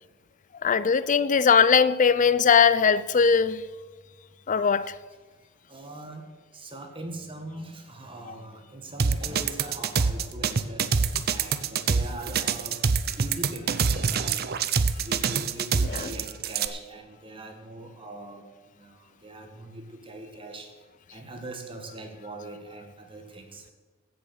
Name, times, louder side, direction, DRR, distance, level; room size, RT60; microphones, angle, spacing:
voice 1, 0.6-3.6 4.5-4.9 11.1-11.2 15.9-16.1, left 6 dB, 40° left, 0.4 m, -20 dB
voice 2, 5.7-6.3 6.5-10.9 11.3-12.8 13.2-14.7 15.0-18.4 18.7-20.7 21.1-23.7, right 2 dB, 25° right, 1.8 m, -41 dB
sound 1, 9.0-16.7, right 5 dB, 50° right, 0.6 m, -25 dB
15.5 x 6.8 x 6.4 m
head